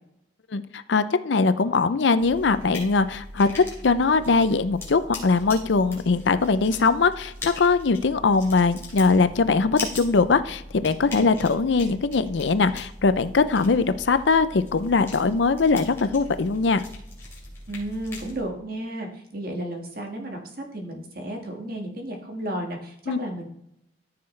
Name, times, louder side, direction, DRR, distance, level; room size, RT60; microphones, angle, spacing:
voice 1, 0.5-16.8 23.1-23.2, left 4 dB, 70° left, 13 dB, 0.5 m, -21 dB
sound 1, 2.2-18.4, left 2 dB, 15° left, 2.8 m, -40 dB
voice 2, 17.7-20.4 20.7-23.5, right 1 dB, 50° right, 2 dB, 1.8 m, -33 dB
14.0 x 5.7 x 3.3 m, 0.79 s
head